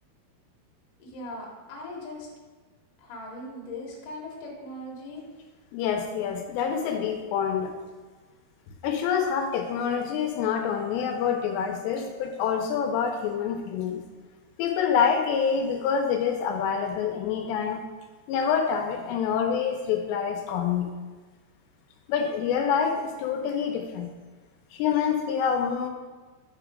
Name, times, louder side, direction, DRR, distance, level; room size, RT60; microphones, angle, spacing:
voice 1, 1.0-2.3 3.0-5.3, left 1 dB, 60° left, -3 dB, 2.4 m, -39 dB
voice 2, 5.7-7.7 8.8-14.0 14.6-17.8 18.3-20.9 22.1-24.1 24.7-25.9, left 7 dB, 85° left, 4 dB, 2.7 m, -26 dB
5.1 x 4.9 x 4.8 m, 1.3 s
omnidirectional pair, 5.0 m